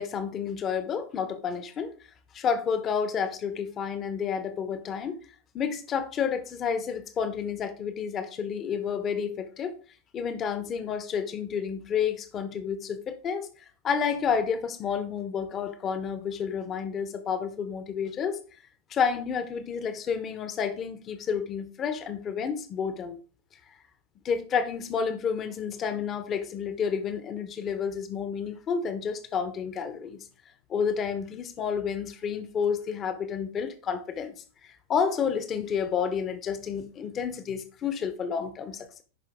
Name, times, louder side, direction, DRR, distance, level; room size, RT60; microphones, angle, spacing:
voice 1, 0.0-1.9 2.3-5.2 5.5-9.7 10.1-13.5 13.8-18.4 18.9-23.2 24.2-30.2 30.7-34.3 34.9-39.0, left 6 dB, 30° left, 11 dB, 1.3 m, -30 dB
11.0 x 5.1 x 3.8 m, 0.38 s
figure-of-eight pair, 90°, 0 cm